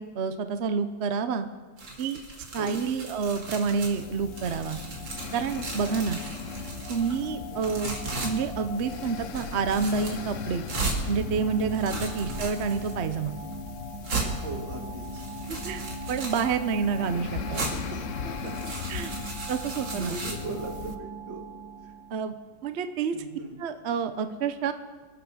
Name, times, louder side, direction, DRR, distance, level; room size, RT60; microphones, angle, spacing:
voice 1, 0.0-1.5 2.0-2.2 2.5-4.8 5.3-6.2 6.9-8.0 8.2-10.7 11.1-13.4 15.5-15.8 16.1-17.7 18.9-19.1 19.5-20.2 22.1-22.3 22.6-23.1 23.6-24.7, right 5 dB, 55° right, 10 dB, 0.7 m, -28 dB
sound 1, 1.8-4.0 4.3-7.1 7.6-8.3 8.8-9.1 9.3-10.2 10.7-11.0 11.6-12.9 13.5-13.6 14.0-14.3 15.0-16.5 17.5-17.7 18.3-20.3, right 3 dB, 85° right, 3.2 m, -36 dB
sound 2, 2.5-21.0, left 8 dB, 65° left, 0.8 m, -40 dB
sound 3, 3.5-22.4, right 1 dB, 15° right, 1.5 m, -41 dB
voice 2, 11.9-12.2 14.4-15.1 17.2-18.0 18.2-18.7 19.4-21.4 21.8-21.9 23.1-23.5, right 3 dB, 70° right, 3 dB, 2.6 m, -39 dB
24.5 x 8.2 x 6.3 m, 1.4 s
omnidirectional pair, 2.1 m